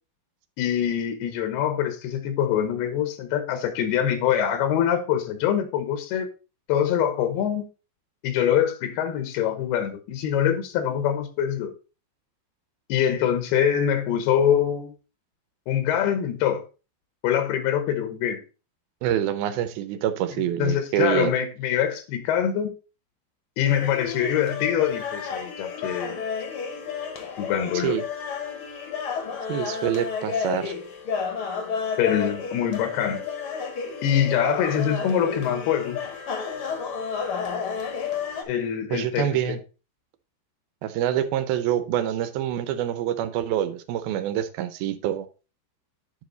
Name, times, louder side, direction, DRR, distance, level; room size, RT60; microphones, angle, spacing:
voice 1, 0.6-6.3 6.7-7.6 8.2-11.7 12.9-14.9 15.7-16.6 17.2-18.4 20.6-22.7 23.6-26.2 27.4-28.0 32.0-33.2 34.0-36.0 38.5-39.6, left 9 dB, 85° left, 3.1 m, -24 dB
voice 2, 19.0-21.3 27.7-28.0 29.5-30.7 38.9-39.6 40.8-45.3, right 11 dB, 80° right, 2.5 m, -26 dB
sound 1, 23.6-38.4, left 6 dB, 60° left, 1.5 m, -31 dB
9.6 x 5.3 x 3.9 m
omnidirectional pair, 4.5 m